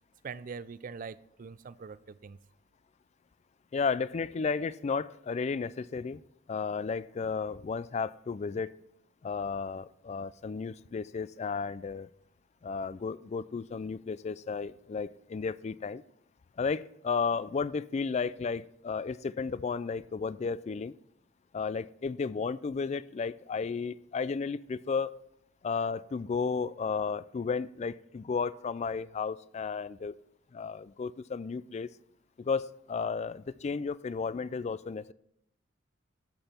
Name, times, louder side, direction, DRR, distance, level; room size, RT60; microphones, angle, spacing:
voice 1, 0.2-2.4, right 5 dB, 45° right, 17 dB, 0.4 m, -43 dB
voice 2, 3.7-6.2 6.5-8.7 9.2-12.1 12.6-16.0 16.6-20.9 21.5-25.2 25.6-30.1 30.5-31.9 32.4-35.1, left 5 dB, 35° left, 18 dB, 0.3 m, -33 dB
12.0 x 7.9 x 4.3 m, 0.75 s
head